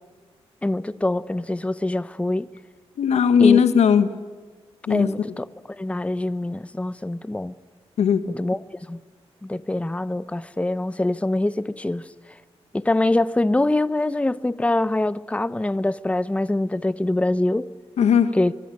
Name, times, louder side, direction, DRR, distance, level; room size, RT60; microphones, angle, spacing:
voice 1, 0.6-2.5 3.4-3.7 4.9-7.5 8.3-8.6 8.9-9.0 9.4-12.1 12.7-17.7 18.3-18.5, left 2 dB, 10° left, 0.8 m, -24 dB
voice 2, 3.0-4.1 4.9-5.1 8.0-8.2 18.0-18.4, left 7 dB, 85° left, 1.5 m, -17 dB
23.5 x 23.5 x 10.0 m
cardioid pair, 75°, 11 cm